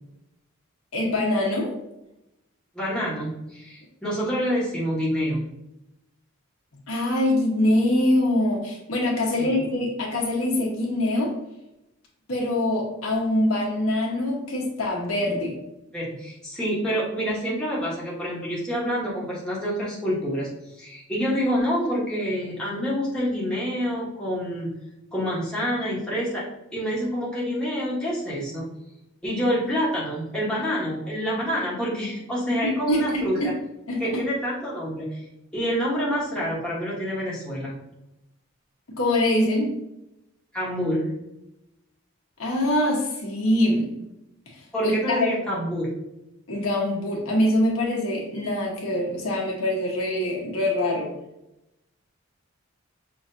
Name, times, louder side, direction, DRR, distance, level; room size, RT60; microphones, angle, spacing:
voice 1, 0.9-1.7 6.9-11.3 12.3-15.6 32.8-33.5 33.9-34.2 38.9-39.8 42.4-44.0 44.8-45.2 46.5-51.1, left 1 dB, 75° left, -2 dB, 1.3 m, -24 dB
voice 2, 2.7-5.4 9.4-9.5 15.9-24.7 25.1-26.4 26.7-28.7 29.2-33.5 34.0-35.2 35.5-37.8 40.5-41.0 44.7-46.0, equal, 5° left, -7 dB, 1.2 m, -27 dB
5.8 x 3.1 x 2.7 m, 0.88 s
head